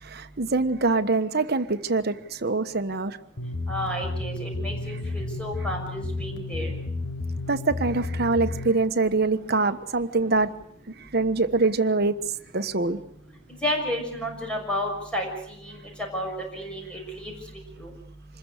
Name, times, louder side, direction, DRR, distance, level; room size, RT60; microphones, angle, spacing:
voice 1, 0.0-3.2 7.5-10.5 11.0-12.2 12.5-13.0, right 3 dB, 55° right, 9 dB, 1.3 m, -24 dB
sound 1, 3.4-8.7, left 2 dB, 75° left, 1.8 m, -32 dB
voice 2, 3.7-6.7 13.6-15.3 15.6-15.8 16.1-16.3 16.5-17.3 17.8-17.9, equal, 5° left, 1 dB, 6.5 m, -31 dB
26.5 x 21.0 x 6.6 m, 0.70 s
head